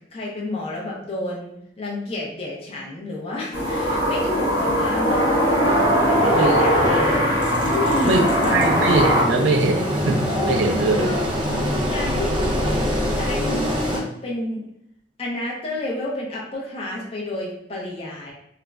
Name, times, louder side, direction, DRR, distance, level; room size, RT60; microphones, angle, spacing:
voice 1, 0.1-5.3 5.6-5.8 6.1-7.2 7.6-8.7 10.2-10.6 10.9-14.6 15.2-18.3, left 2 dB, 30° left, -3 dB, 0.5 m, -30 dB
sound 1, 3.5-9.2, equal, 60° left, 0.9 m, -20 dB
Engine, 5.6-14.0, equal, 25° right, 0.5 m, -25 dB
voice 2, 8.5-11.1, right 3 dB, 80° right, 2 dB, 0.4 m, -21 dB
2.4 x 2.0 x 3.2 m, 0.75 s
head